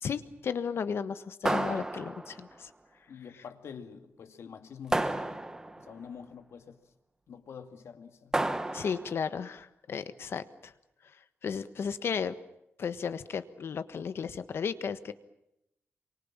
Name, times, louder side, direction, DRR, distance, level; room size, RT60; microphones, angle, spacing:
voice 1, 0.0-2.7 8.7-10.7 11.4-12.4 12.8-15.1, left 6 dB, 65° left, 1.4 m, -34 dB
sound 1, 1.4-2.5 4.9-5.9 8.3-9.2, right 1 dB, 15° right, 1.2 m, -31 dB
voice 2, 3.1-5.4 5.8-6.8 7.3-8.4 9.9-10.1, left 7 dB, 85° left, 2.3 m, -47 dB
27.5 x 24.5 x 7.4 m
wide cardioid pair, 165°, 5 cm